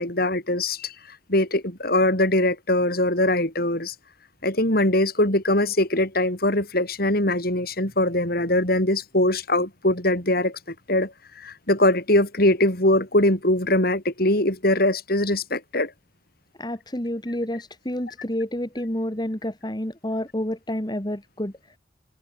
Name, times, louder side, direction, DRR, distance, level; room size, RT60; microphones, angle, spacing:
voice 1, 0.0-3.9 4.4-15.9 18.1-18.2, left 1 dB, 55° left, 6.3 m, -22 dB
voice 2, 16.6-21.5, left 1 dB, 25° left, 2.7 m, -29 dB
head